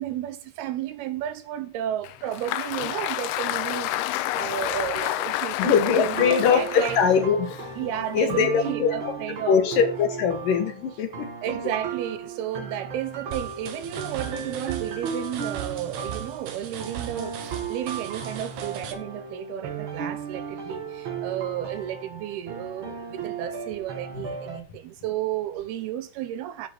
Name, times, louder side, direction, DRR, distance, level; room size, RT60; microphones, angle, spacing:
voice 1, 0.0-7.0 7.8-9.6 11.4-26.7, right 11 dB, 90° right, 2.9 m, -32 dB
Applause, 2.0-8.4, left 14 dB, 85° left, 2.6 m, -30 dB
voice 2, 5.6-7.5 8.1-9.1 9.5-11.3, left 6 dB, 65° left, 2.9 m, -22 dB
sound 1, 6.1-24.6, right 6 dB, 50° right, 1.6 m, -36 dB
sound 2, 13.3-18.9, right 9 dB, 65° right, 2.4 m, -38 dB
8.7 x 7.6 x 6.0 m
omnidirectional pair, 4.4 m